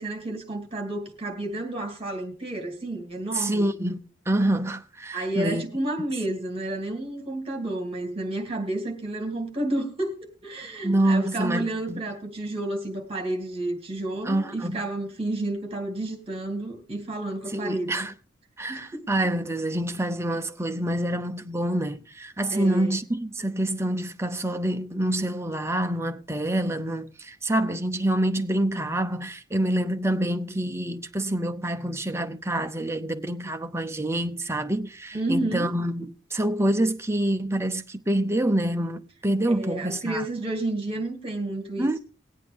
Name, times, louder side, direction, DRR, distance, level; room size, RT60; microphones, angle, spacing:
voice 1, 0.0-3.7 5.1-18.1 18.7-19.1 22.5-22.9 35.1-35.7 39.6-42.0, right 2 dB, 30° right, 2.6 m, -31 dB
voice 2, 3.3-5.6 10.8-12.0 14.3-14.8 17.5-18.1 18.6-40.3 41.8-42.0, right 1 dB, 15° right, 0.7 m, -26 dB
20.0 x 8.4 x 3.5 m
head